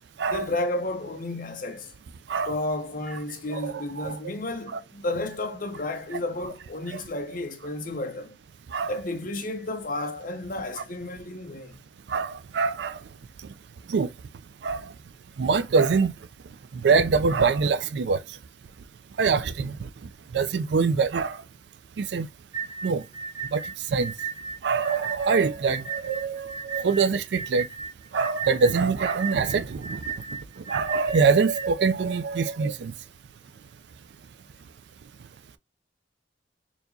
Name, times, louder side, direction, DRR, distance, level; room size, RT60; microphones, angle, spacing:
voice 1, 0.3-1.9 2.5-8.4 8.9-11.8, left 2 dB, 50° left, 0.8 m, -32 dB
voice 2, 3.5-4.2 4.7-4.8 6.9-7.0 8.7-8.9 12.1-13.0 13.9-14.1 14.6-14.8 15.4-16.1 16.8-18.2 19.2-19.8 20.3-21.4 22.0-22.3 22.8-23.0 23.5-23.6 23.9-24.1 24.6-27.7 28.1-30.0 30.7-32.9, right 5 dB, 70° right, 0.4 m, -24 dB
sound 1, 22.5-31.7, right 5 dB, 15° right, 0.6 m, -35 dB
4.4 x 2.9 x 2.6 m
head